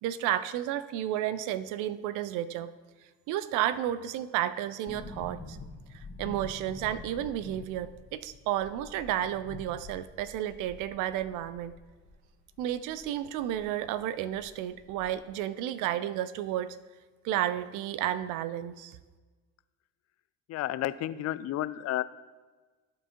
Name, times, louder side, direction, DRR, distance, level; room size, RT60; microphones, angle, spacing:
voice 1, 0.0-2.7 3.3-5.6 5.9-11.7 12.6-16.8 17.2-19.0, right 12 dB, 60° right, 15 dB, 0.6 m, -32 dB
sound 1, 4.9-13.7 14.0-14.1 14.3-15.4 15.6-15.7, left 3 dB, 25° left, 1.5 m, -47 dB
voice 2, 20.5-22.0, left 14 dB, 45° left, 14 dB, 0.5 m, -31 dB
13.5 x 4.6 x 2.9 m, 1.3 s
hypercardioid pair, 65°, 34 cm